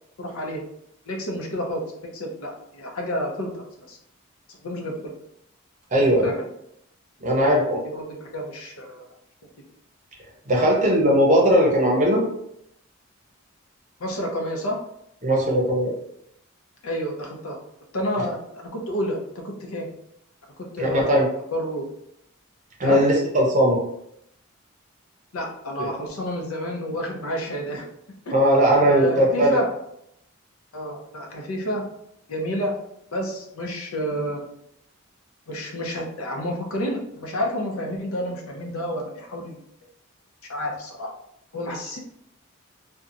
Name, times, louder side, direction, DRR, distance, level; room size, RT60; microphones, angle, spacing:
voice 1, 0.2-0.6 1.1-1.8 2.1-4.0 4.6-5.1 6.0-6.5 7.8-9.1 14.0-14.8 16.8-17.6 17.9-19.2 19.4-19.9 20.7-21.1 21.5-21.8 22.8-23.0 25.3-27.8 28.3-28.4 28.8-29.7 30.7-31.8 32.3-32.7 33.1-34.4 35.5-39.6 40.5-41.1 41.5-42.0, equal, 80° left, 0 dB, 0.6 m, -29 dB
voice 2, 5.9-6.3 7.2-7.8 10.5-12.2 15.2-15.9 20.8-21.3 22.8-23.8 28.3-29.6, equal, 35° right, -2 dB, 0.6 m, -19 dB
2.7 x 2.2 x 2.5 m, 0.76 s
head